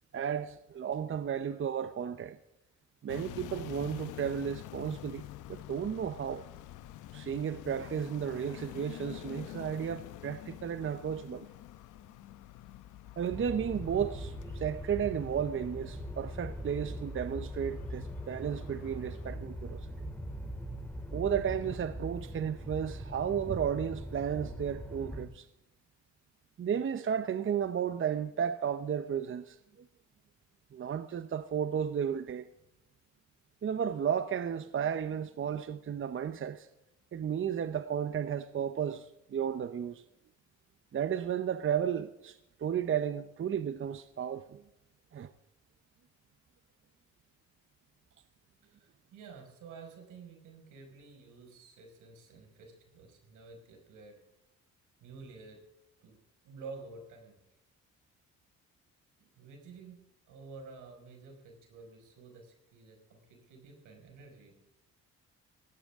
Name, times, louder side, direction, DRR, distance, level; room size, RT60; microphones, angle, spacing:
voice 1, 0.1-2.4 3.0-6.5 7.1-11.5 13.2-19.9 21.1-25.5 26.6-29.9 30.7-32.5 33.6-36.7 37.1-40.0 40.9-44.6 45.1-45.3, right 8 dB, 45° right, 0.8 m, -33 dB
sound 1, 3.1-19.4, left 14 dB, 85° left, 0.8 m, -48 dB
sound 2, 13.3-25.3, equal, 5° left, 2.9 m, -41 dB
voice 2, 48.6-54.2 55.0-55.6 56.0-56.1 56.4-57.4 59.2-60.0 60.3-64.6, right 4 dB, 85° right, 5.5 m, -51 dB
18.0 x 16.0 x 3.7 m
cardioid pair, 90°, 30 cm